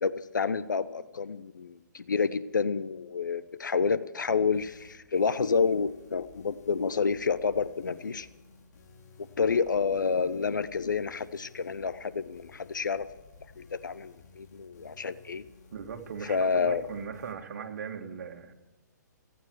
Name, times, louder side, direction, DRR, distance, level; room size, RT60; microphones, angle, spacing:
voice 1, 0.0-8.3 9.4-13.1 13.6-15.4 16.3-16.8, left 5 dB, 85° left, 14 dB, 0.9 m, -29 dB
sound 1, 4.5-17.3, left 4 dB, 65° left, 3.6 m, -55 dB
voice 2, 15.7-18.5, right 6 dB, 60° right, 5 dB, 2.1 m, -39 dB
28.5 x 9.5 x 4.7 m, 1.1 s
hypercardioid pair, 130°, 10 cm